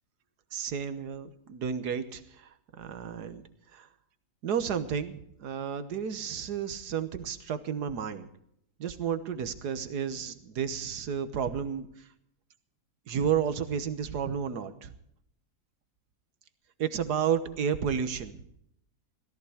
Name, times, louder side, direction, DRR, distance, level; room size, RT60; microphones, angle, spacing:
voice 1, 0.5-2.2 2.8-3.4 3.7-3.9 4.4-8.3 8.8-11.9 13.1-14.9 16.8-18.4, right 7 dB, 80° right, 11 dB, 1.7 m, -31 dB
17.0 x 14.5 x 4.9 m, 0.73 s
omnidirectional pair, 1.7 m